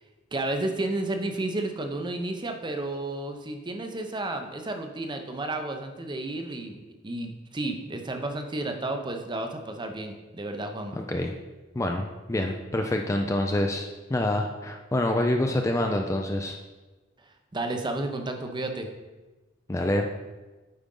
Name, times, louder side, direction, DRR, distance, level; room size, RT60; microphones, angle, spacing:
voice 1, 0.3-11.0 17.5-18.9, right 2 dB, 25° right, 5 dB, 0.6 m, -32 dB
voice 2, 10.9-11.3 11.8-16.6 19.7-20.1, left 1 dB, 15° left, 3 dB, 0.4 m, -26 dB
8.5 x 5.1 x 3.7 m, 1.2 s
head